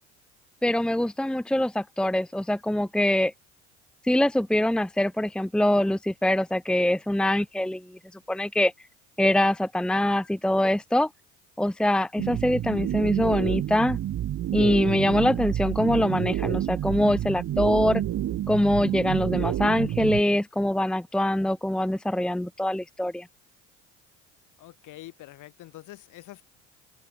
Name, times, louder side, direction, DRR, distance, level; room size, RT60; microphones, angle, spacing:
voice 1, 0.6-3.3 4.0-8.0 8.3-8.7 9.2-11.1 11.6-14.0 14.5-18.0 18.5-23.3, left 1 dB, ahead, 1.1 m, -24 dB
sound 1, 12.2-20.2, right 12 dB, 45° right, 4.0 m, -29 dB
voice 2, 24.6-26.4, left 15 dB, 55° left, 6.2 m, -45 dB
hypercardioid pair, 65°, 37 cm